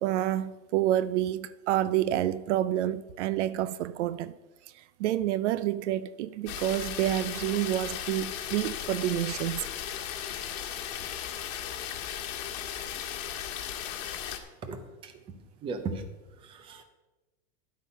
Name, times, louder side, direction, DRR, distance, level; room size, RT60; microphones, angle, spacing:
voice 1, 0.0-4.3 4.7-9.6, right 13 dB, 60° right, 0.5 m, -28 dB
sound 1, 6.5-14.4, left 10 dB, 65° left, 1.7 m, -36 dB
voice 2, 14.6-15.1 15.6-16.0 16.4-16.8, right 4 dB, 15° right, 0.6 m, -36 dB
11.5 x 8.2 x 5.6 m
supercardioid pair, 170°, 40 cm